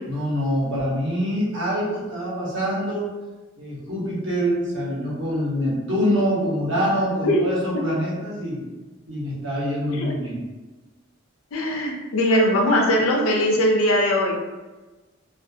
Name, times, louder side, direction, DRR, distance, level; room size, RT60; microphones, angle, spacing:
voice 1, 0.1-3.1 3.6-8.6 9.1-10.4, equal, 60° right, -6 dB, 1.0 m, -25 dB
voice 2, 11.5-14.3, left 1 dB, 90° left, 0 dB, 0.6 m, -20 dB
2.6 x 2.4 x 2.7 m, 1.2 s
head